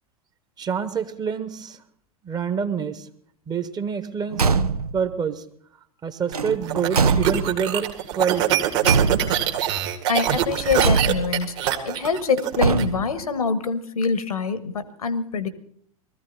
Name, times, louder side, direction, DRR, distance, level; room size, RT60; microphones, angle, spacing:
voice 1, 0.6-1.8 2.2-3.1 3.5-4.5 4.9-5.4 6.0-8.7, right 7 dB, 20° right, 12 dB, 1.2 m, -27 dB
Car / Truck / Slam, 4.3-5.1 6.3-7.7 8.8-9.6 10.8-11.5 12.6-13.2, right 5 dB, 80° right, 0.6 m, -22 dB
sound 1, 6.3-12.8, right 11 dB, 50° right, 1.9 m, -24 dB
voice 2, 10.1-11.6 11.8-15.5, left 5 dB, 70° left, 15 dB, 1.4 m, -25 dB
20.0 x 14.5 x 4.0 m, 0.62 s
figure-of-eight pair, 90°, 19 cm